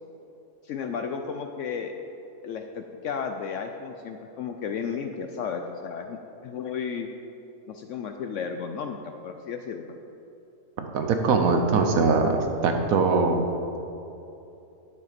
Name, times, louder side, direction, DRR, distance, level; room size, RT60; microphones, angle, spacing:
voice 1, 0.6-1.9 2.4-7.1 7.7-10.0, left 6 dB, 70° left, 5 dB, 0.8 m, -33 dB
voice 2, 10.8-13.4, right 4 dB, 65° right, 4 dB, 1.2 m, -22 dB
10.5 x 6.6 x 5.1 m, 2.8 s
omnidirectional pair, 1.6 m